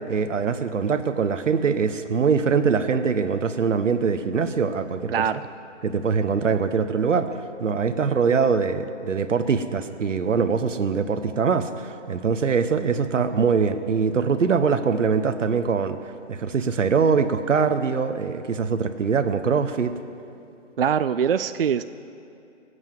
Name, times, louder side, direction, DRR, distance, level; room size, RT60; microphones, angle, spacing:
voice 1, 0.1-5.2 5.8-7.3 7.6-19.9, right 5 dB, 80° right, 9 dB, 1.1 m, -23 dB
voice 2, 20.8-21.8, right 8 dB, 50° right, 11 dB, 0.4 m, -22 dB
19.5 x 8.2 x 7.7 m, 2.6 s
hypercardioid pair, 160°, 37 cm